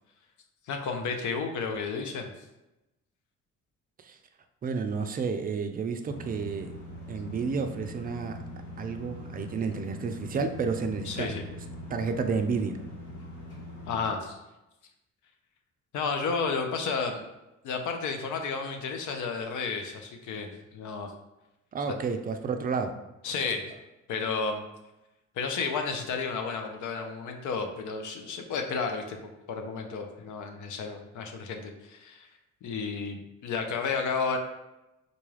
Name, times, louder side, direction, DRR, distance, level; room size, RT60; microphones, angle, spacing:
voice 1, 0.7-2.3 11.1-11.4 13.9-14.4 15.9-17.2 17.6-21.1 23.2-23.6 24.1-24.6 25.4-29.2 29.5-32.3 32.6-34.4, left 5 dB, 75° left, 5 dB, 0.6 m, -32 dB
voice 2, 4.6-6.7 7.1-8.4 8.8-11.3 11.9-12.8 21.7-23.0, right 5 dB, 30° right, 7 dB, 0.4 m, -31 dB
sound 1, 6.1-14.1, left 1 dB, 50° left, 1.3 m, -42 dB
3.9 x 2.3 x 3.2 m, 0.96 s
cardioid pair, 90°, 30 cm